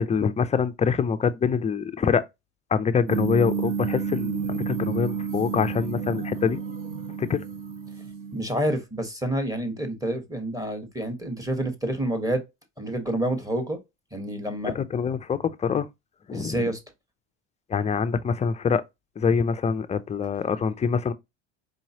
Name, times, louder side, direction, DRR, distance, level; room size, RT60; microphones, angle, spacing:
voice 1, 0.0-2.2 2.7-6.6 7.2-7.4 14.7-15.9 16.3-16.7 17.7-18.8 19.2-21.1, left 6 dB, 20° left, 0.4 m, -25 dB
sound 1, 3.1-8.4, right 6 dB, 70° right, 1.5 m, -30 dB
voice 2, 8.3-12.4 12.8-13.8 14.1-14.8 16.3-16.8, right 1 dB, 10° right, 1.3 m, -28 dB
4.9 x 3.0 x 2.8 m
supercardioid pair, 105°, 37 cm